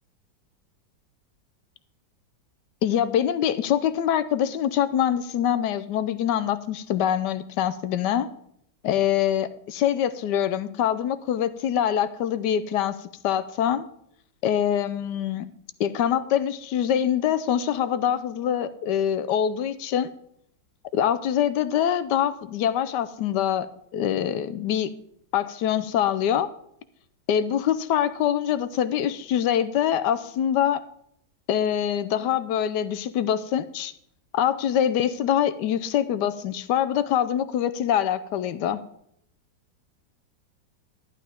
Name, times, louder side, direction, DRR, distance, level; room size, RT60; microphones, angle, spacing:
voice 1, 2.8-8.3 8.8-13.9 14.4-15.5 15.8-20.1 20.9-24.9 25.3-26.5 27.3-30.8 31.5-33.9 34.3-38.8, left 10 dB, 75° left, 13 dB, 1.2 m, -24 dB
11.5 x 11.0 x 3.5 m, 0.72 s
omnidirectional pair, 2.0 m